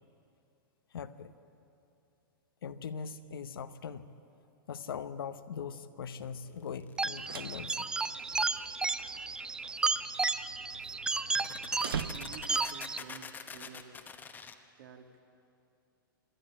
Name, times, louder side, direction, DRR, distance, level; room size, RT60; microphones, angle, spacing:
voice 1, 0.9-1.3 2.6-4.0 4.7-7.9 11.8-11.9 12.5-12.6, left 6 dB, 75° left, 11 dB, 1.0 m, -41 dB
sound 1, 6.8-7.1 10.3-10.4 10.9-11.0 11.3-14.5, left 6 dB, 15° left, 1.0 m, -45 dB
sound 2, 7.0-13.0, right 3 dB, 5° right, 0.4 m, -33 dB
sound 3, 7.0-12.8, right 7 dB, 85° right, 0.8 m, -44 dB
voice 2, 12.1-14.0 14.8-15.2, right 7 dB, 60° right, 4 dB, 2.1 m, -50 dB
25.5 x 12.0 x 8.6 m, 2.7 s
hypercardioid pair, 125°, 12 cm